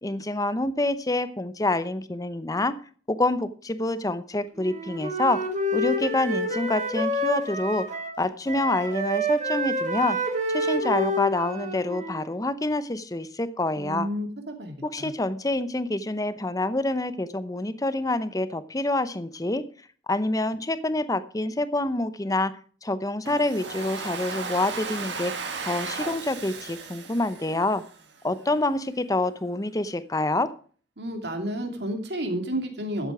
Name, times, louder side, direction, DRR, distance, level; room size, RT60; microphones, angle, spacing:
voice 1, 0.0-2.8 3.1-5.4 5.7-7.8 8.2-10.2 10.5-14.1 14.8-19.6 20.1-22.5 22.8-25.3 25.6-27.8 28.2-30.5, left 2 dB, 20° left, 13 dB, 0.8 m, -27 dB
Wind instrument woodwind instrument, 4.6-8.2 8.5-12.4, equal, 40° right, 2.7 m, -28 dB
voice 2, 13.8-15.1 31.0-33.1, equal, 65° right, 5 dB, 2.6 m, -31 dB
Domestic sounds home sounds, 23.3-28.2, right 4 dB, 85° right, 1.9 m, -35 dB
12.5 x 8.8 x 4.9 m, 0.43 s
head